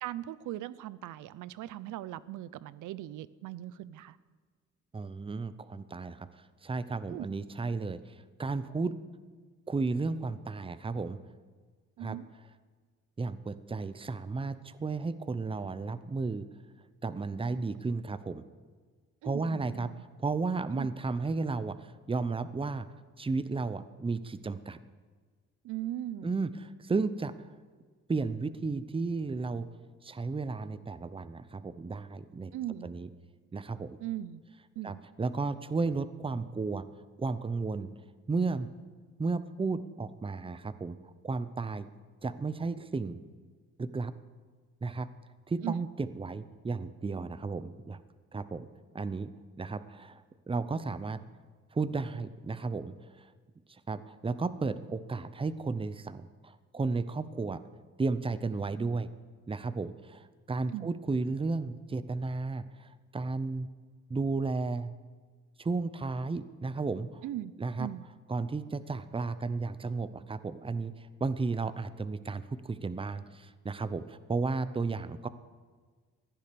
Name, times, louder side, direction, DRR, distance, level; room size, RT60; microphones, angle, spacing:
voice 1, 0.0-4.2 7.1-7.4 12.0-12.2 19.2-20.0 20.7-20.9 25.6-26.3 32.5-32.9 34.0-34.4 34.8-35.0 45.6-45.9 60.7-60.9 67.2-67.5 67.8-68.0, right 13 dB, 80° right, 18 dB, 0.6 m, -39 dB
voice 2, 4.9-6.3 6.6-8.9 9.7-11.2 12.0-12.2 13.2-16.4 17.0-18.4 19.2-19.9 20.2-22.9 23.2-24.8 26.2-27.3 28.1-29.7 30.0-32.5 32.8-33.1 33.5-34.0 34.8-36.8 37.2-37.9 38.3-38.7 39.2-41.9 42.2-43.3 43.8-44.1 44.8-45.1 45.5-48.0 48.3-48.7 48.9-49.3 49.6-50.2 50.5-51.2 51.7-52.9 53.9-57.6 58.0-59.1 59.5-63.7 64.1-64.9 65.6-67.2 67.6-67.9 68.3-70.9 71.2-75.3, right 3 dB, 20° right, 14 dB, 0.7 m, -33 dB
15.0 x 10.5 x 6.9 m, 1.5 s
cardioid pair, 90°, 30 cm